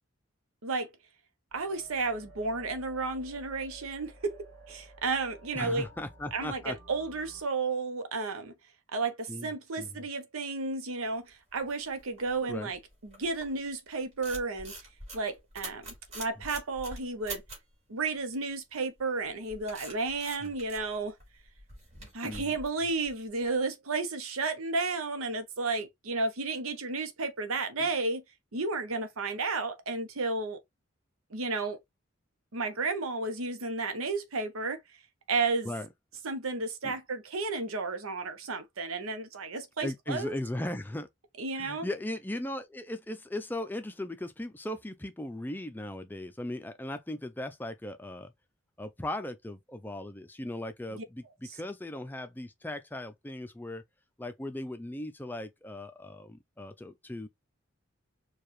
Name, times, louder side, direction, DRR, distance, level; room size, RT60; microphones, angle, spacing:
sound 1, 1.5-7.4, right 1 dB, 65° right, 2.0 m, -53 dB
voice 1, 1.5-5.9 6.3-8.5 8.9-14.7 15.1-17.4 17.9-21.1 22.1-28.2 28.5-30.6 31.3-31.8 32.5-34.8 35.3-35.7 36.2-40.4 41.4-41.9 50.9-51.0 51.4-51.6, right 3 dB, 85° right, 0.8 m, -32 dB
voice 2, 5.5-6.8 9.3-9.5 9.8-10.0 12.5-12.7 20.4-20.5 22.2-22.5 27.8-27.9 35.6-35.9 36.8-36.9 39.8-41.1 41.6-48.3 48.8-53.8 54.2-57.3, left 1 dB, 10° left, 0.4 m, -38 dB
sound 2, 11.3-13.7 14.0-17.7 19.0-23.5, right 2 dB, 30° right, 2.3 m, -45 dB
4.6 x 2.3 x 3.1 m
head